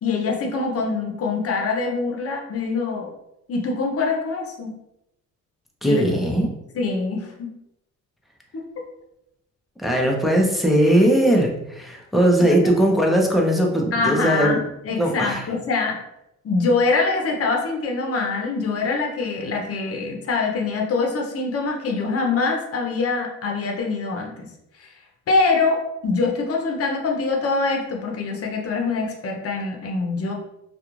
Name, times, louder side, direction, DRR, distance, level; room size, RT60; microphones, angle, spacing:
voice 1, 0.0-3.1 3.5-4.7 5.8-6.1 6.7-7.5 8.5-8.6 12.4-12.6 13.9-16.0 16.4-24.5 24.8-24.9 25.3-30.3, left 4 dB, 50° left, 1 dB, 0.8 m, -24 dB
voice 2, 5.8-6.5 9.8-14.6 15.0-15.4, right 1 dB, ahead, 0 dB, 0.6 m, -19 dB
2.4 x 2.4 x 3.0 m, 0.85 s
cardioid pair, 90°, 30 cm